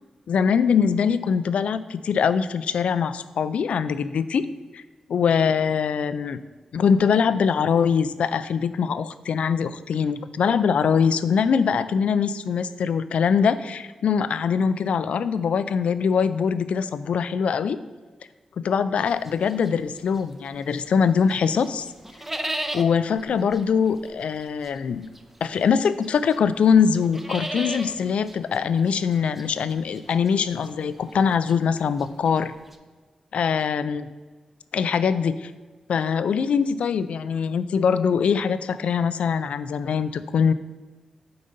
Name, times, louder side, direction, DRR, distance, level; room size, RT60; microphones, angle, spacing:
voice 1, 0.3-4.5 4.7-4.8 5.1-6.4 6.7-17.8 18.6-21.9 22.7-25.1 25.4-32.5 33.3-34.1 34.7-35.5 35.9-40.5, left 6 dB, 85° left, 14 dB, 0.3 m, -22 dB
sound 1, 19.0-21.0 21.3-32.8, right 1 dB, 10° right, 0.5 m, -37 dB
7.8 x 3.8 x 5.2 m, 1.4 s
wide cardioid pair, 125°, 2 cm